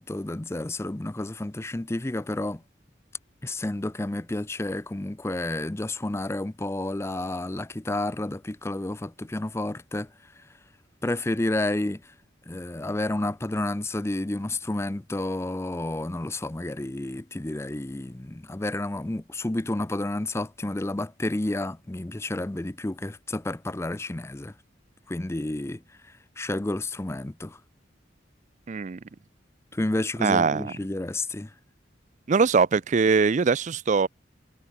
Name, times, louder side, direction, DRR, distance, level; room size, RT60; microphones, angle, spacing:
voice 1, 0.0-2.6 3.4-10.5 11.0-12.1 12.5-24.5 25.1-27.6 29.7-31.5, left 1 dB, 15° left, 0.5 m, -30 dB
voice 2, 28.7-29.0 30.2-30.7 32.3-34.1, right 5 dB, 40° right, 0.4 m, -22 dB
head